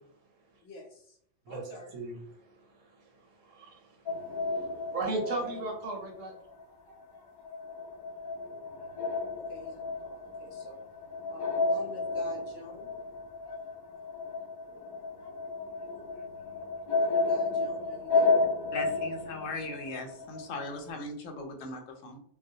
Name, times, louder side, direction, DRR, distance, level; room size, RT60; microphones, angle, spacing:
voice 1, 0.6-1.2 1.5-2.0 5.4-5.7 9.4-10.8 11.3-12.9 16.9-18.4, left 2 dB, 60° left, 0 dB, 0.8 m, -47 dB
voice 2, 2.4-3.0 3.4-4.0 4.5-6.3, right 3 dB, 85° right, 1 dB, 1.1 m, -36 dB
sound 1, 4.1-6.6 6.9-20.7, left 3 dB, 40° left, 0.3 m, -32 dB
voice 3, 18.7-22.2, left 2 dB, 85° left, 4 dB, 0.9 m, -39 dB
2.3 x 2.1 x 2.7 m, 0.66 s
omnidirectional pair, 1.3 m